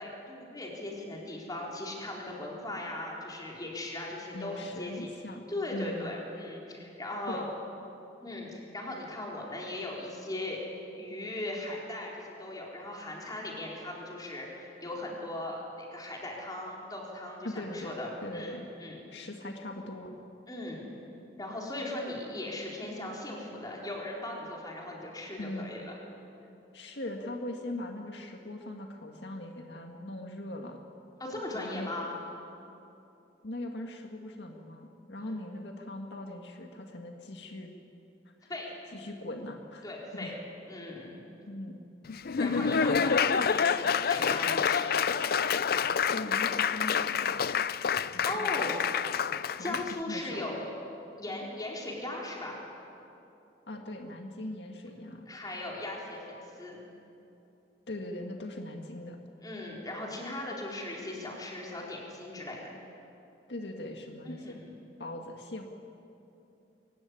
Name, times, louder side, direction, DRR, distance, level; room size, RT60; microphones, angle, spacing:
voice 1, 0.0-5.1 5.5-7.4 8.2-10.6 11.0-19.0 20.5-20.8 21.4-26.0 31.2-32.2 38.5-38.7 39.8-40.3 40.7-41.2 42.4-45.0 48.2-48.9 49.3-50.7 51.2-52.6 55.3-56.8 59.4-62.7 64.2-64.8, left 1 dB, 20° left, -2 dB, 4.5 m, -38 dB
voice 2, 4.3-5.4 5.7-6.1 7.3-7.4 17.4-17.9 18.2-18.7 19.1-20.2 25.4-25.7 26.7-30.8 31.5-31.9 33.4-37.7 38.4-38.5 38.9-39.9 40.1-40.4 41.5-41.8 46.1-47.4 48.1-48.8 49.6-49.8 50.1-50.5 53.7-55.3 57.9-59.2 63.5-64.6 65.0-65.7, left 1 dB, 80° left, 3 dB, 1.8 m, -40 dB
Laughter / Applause, 42.1-50.0, left 6 dB, 60° left, 0.5 m, -28 dB
22.5 x 16.5 x 9.9 m, 2.8 s
head